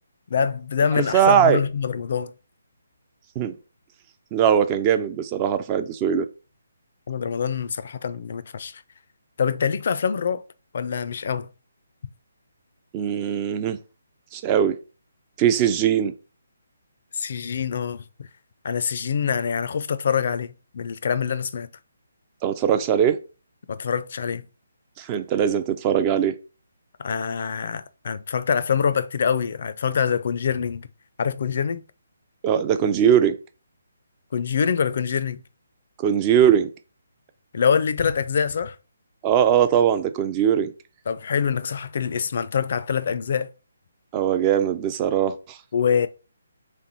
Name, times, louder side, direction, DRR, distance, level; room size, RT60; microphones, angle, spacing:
voice 1, 0.3-2.3 7.1-8.8 9.4-10.4 10.7-11.5 17.1-18.3 18.6-21.7 23.7-24.5 27.0-30.9 31.2-31.8 34.3-35.4 37.5-38.8 41.1-43.5 45.7-46.1, left 7 dB, 50° left, 0.4 m, -25 dB
voice 2, 0.9-1.6 3.4-3.6 4.3-6.3 12.9-13.8 14.3-14.8 15.4-16.1 22.4-23.2 25.0-26.4 32.4-33.4 36.0-36.7 39.2-40.7 44.1-45.6, right 9 dB, 25° right, 0.4 m, -20 dB
3.5 x 3.1 x 4.0 m
figure-of-eight pair, 145°, 0 cm